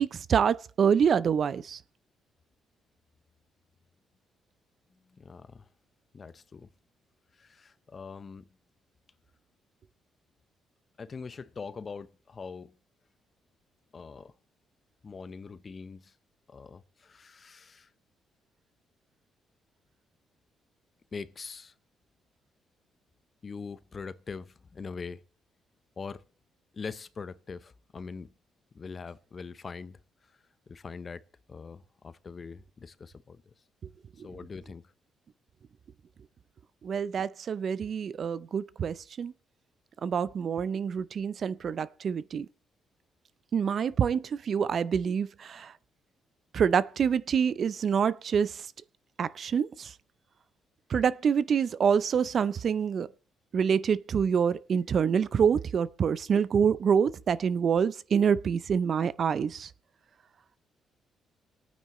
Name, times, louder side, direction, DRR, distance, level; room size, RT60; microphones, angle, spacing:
voice 1, 0.0-1.8 34.2-34.3 36.8-39.3 40.0-42.5 43.5-45.7 46.5-48.7 49.2-49.9 50.9-53.1 53.5-59.7, right 7 dB, 55° right, 0.5 m, -26 dB
voice 2, 4.9-5.7 6.1-6.7 7.3-8.5 11.0-12.8 13.9-14.3 15.0-16.2 16.5-17.9 21.1-21.7 23.4-25.2 26.0-26.2 26.7-28.3 28.7-31.2 31.5-33.5 34.2-34.9, left 5 dB, 40° left, 0.8 m, -43 dB
27.5 x 9.3 x 3.1 m
cardioid pair, 90°, 0 cm